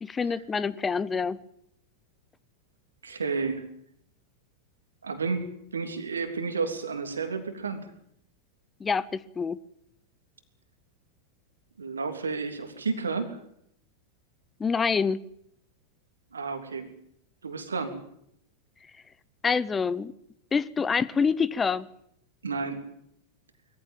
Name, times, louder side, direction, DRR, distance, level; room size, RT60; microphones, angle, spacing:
voice 1, 0.0-1.4 8.8-9.6 14.6-15.2 19.4-20.1 20.5-21.9, left 5 dB, 15° left, 18 dB, 0.8 m, -26 dB
voice 2, 3.0-3.6 5.0-7.9 11.8-13.4 16.3-16.9 17.4-18.0 22.4-22.8, right 4 dB, 75° right, 8 dB, 3.2 m, -31 dB
21.5 x 15.0 x 9.1 m, 0.72 s
figure-of-eight pair, 90°, 0 cm